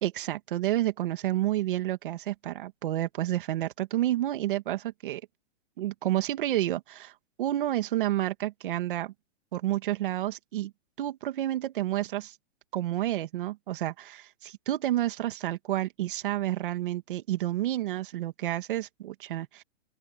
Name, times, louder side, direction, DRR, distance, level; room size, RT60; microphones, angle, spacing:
voice 1, 0.0-5.2 5.8-7.1 7.4-9.1 9.5-10.7 11.0-12.3 12.7-19.6, right 14 dB, 45° right, 2.1 m, -30 dB
open air
hypercardioid pair, 175°, 37 cm